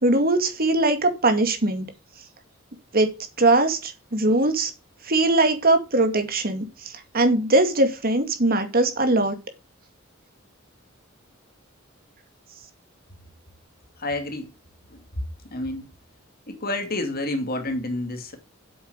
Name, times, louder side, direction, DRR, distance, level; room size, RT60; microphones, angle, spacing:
voice 1, 0.0-1.9 2.9-3.1 3.4-4.7 5.0-9.4, right 2 dB, 45° right, 2.2 m, -21 dB
voice 2, 14.0-14.5 14.9-15.9 16.5-18.4, left 2 dB, 45° left, 2.3 m, -29 dB
8.1 x 7.2 x 8.0 m
head